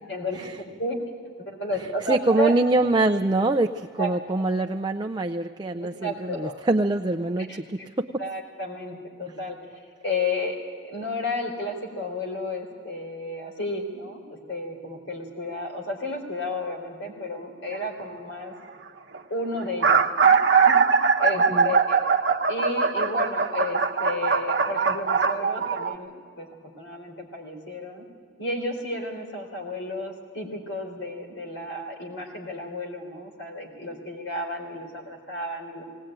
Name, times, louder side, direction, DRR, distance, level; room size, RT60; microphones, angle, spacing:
voice 1, 0.1-1.0 1.5-2.6 4.0-4.1 6.0-6.5 7.4-7.9 8.2-9.6 10.0-10.6 10.8-18.5 19.3-20.0 20.2-22.0 22.5-26.5 26.8-28.0 28.4-35.8, left 2 dB, 70° left, 2 dB, 4.1 m, -32 dB
voice 2, 2.1-8.1 21.5-21.7, right 2 dB, 25° right, 5 dB, 0.5 m, -24 dB
sound 1, 17.7-18.0 18.9-19.0 19.1-19.2 19.6-25.9, right 5 dB, 65° right, 0.9 m, -21 dB
19.0 x 19.0 x 9.0 m, 2.1 s
head